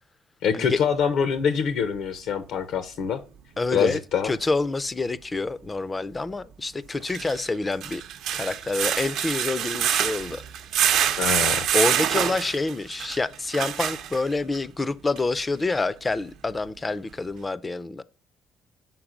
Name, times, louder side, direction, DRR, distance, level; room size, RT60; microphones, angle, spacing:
voice 1, 0.4-3.2 3.7-4.3 11.2-11.7, left 7 dB, 75° left, 0.6 m, -25 dB
voice 2, 3.6-8.0 8.3-10.4 10.8-10.9 11.7-18.0, left 3 dB, 15° left, 0.3 m, -27 dB
sound 1, 4.4-4.5 6.9-14.6 15.2-15.3 15.7-15.8, right 10 dB, 70° right, 0.6 m, -26 dB
5.9 x 4.2 x 5.0 m
cardioid pair, 145°, 0 cm